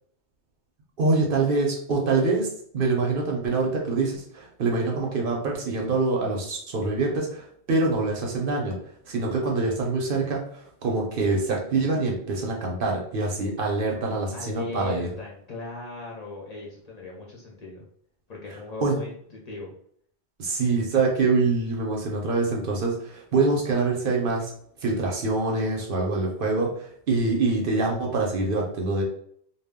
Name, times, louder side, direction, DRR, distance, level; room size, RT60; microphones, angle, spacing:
voice 1, 1.0-2.5 2.7-8.8 9.1-15.1 18.8-19.0 20.4-24.5 24.8-29.0, right 3 dB, 60° right, 0 dB, 0.7 m, -25 dB
voice 2, 14.3-17.8 18.3-19.7, left 3 dB, 45° left, -3 dB, 0.6 m, -38 dB
2.2 x 2.1 x 3.4 m, 0.63 s
omnidirectional pair, 1.1 m